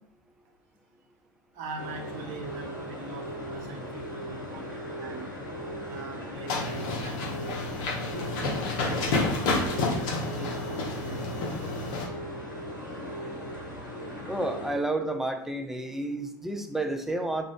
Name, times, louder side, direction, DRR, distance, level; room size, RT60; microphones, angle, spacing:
voice 1, 1.5-5.3 5.8-7.6 8.1-11.8, right 3 dB, 55° right, 1 dB, 0.7 m, -42 dB
sound 1, 1.8-14.7, equal, 85° left, 0.7 m, -38 dB
sound 2, 6.5-12.1, left 3 dB, 55° left, 0.8 m, -30 dB
voice 2, 14.3-17.5, right 2 dB, 5° right, 5 dB, 0.3 m, -30 dB
2.5 x 2.3 x 3.2 m, 0.72 s
figure-of-eight pair, 75°, 10 cm